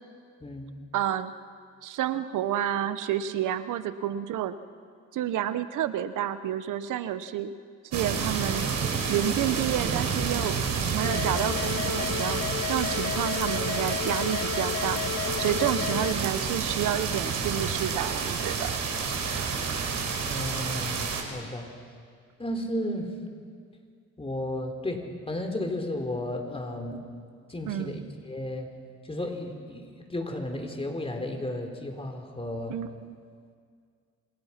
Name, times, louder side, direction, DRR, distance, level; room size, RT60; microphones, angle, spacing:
voice 1, 0.9-1.3 1.8-4.5 5.1-7.5 7.9-8.7 9.1-10.6 10.9-12.4 12.7-15.0 15.4-18.8 19.3-19.5 27.7-28.1 32.7-33.2, right 11 dB, 85° right, 12 dB, 1.2 m, -30 dB
sound 1, 7.9-21.2, right 5 dB, 65° right, 4.5 m, -29 dB
sound 2, 11.0-16.1, left 14 dB, 55° left, 0.6 m, -33 dB
voice 2, 20.2-21.7 22.4-23.1 24.2-27.0 27.5-28.0 28.3-28.7 29.0-32.8, left 1 dB, 20° left, 4 dB, 4.0 m, -33 dB
28.5 x 26.0 x 6.0 m, 2.1 s
cardioid pair, 90°, 30 cm